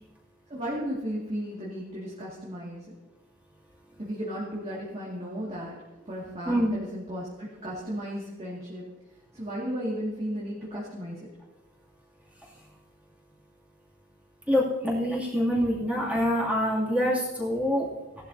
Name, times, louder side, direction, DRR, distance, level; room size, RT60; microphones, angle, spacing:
voice 1, 0.5-2.8 4.0-5.7 6.1-8.8 9.3-11.2, equal, 30° right, -6 dB, 2.2 m, -34 dB
voice 2, 14.5-17.9, equal, 5° right, -6 dB, 2.6 m, -25 dB
17.0 x 12.0 x 2.8 m, 1.1 s
head